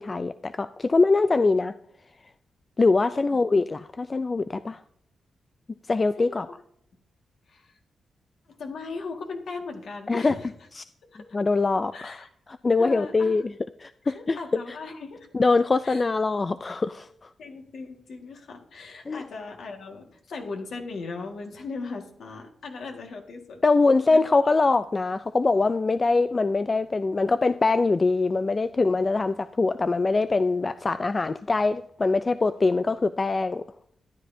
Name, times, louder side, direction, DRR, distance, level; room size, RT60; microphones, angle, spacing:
voice 1, 0.0-1.7 2.8-4.8 5.9-6.5 10.1-10.3 10.8-10.9 11.3-12.1 12.6-13.4 13.8-14.4 15.3-17.3 19.1-19.2 23.6-33.6, left 3 dB, 35° left, 12 dB, 0.4 m, -23 dB
voice 2, 8.5-10.5 11.1-11.2 11.9-12.3 12.8-13.4 14.0-15.3 15.8-16.1 17.4-23.6 24.1-24.2, left 4 dB, 75° left, 2 dB, 1.7 m, -38 dB
12.5 x 9.8 x 2.7 m, 0.67 s
cardioid pair, 60°, 0 cm